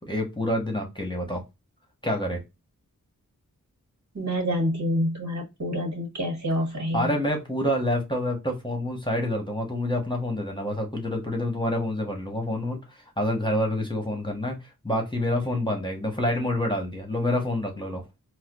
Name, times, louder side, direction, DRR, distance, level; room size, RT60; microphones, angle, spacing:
voice 1, 0.1-1.4 2.0-2.4 6.9-14.5 14.8-18.0, left 1 dB, 15° left, 2 dB, 1.2 m, -27 dB
voice 2, 4.1-7.1, equal, 55° right, 1 dB, 1.7 m, -27 dB
4.2 x 2.4 x 2.4 m, 0.23 s
wide cardioid pair, 55°, 34 cm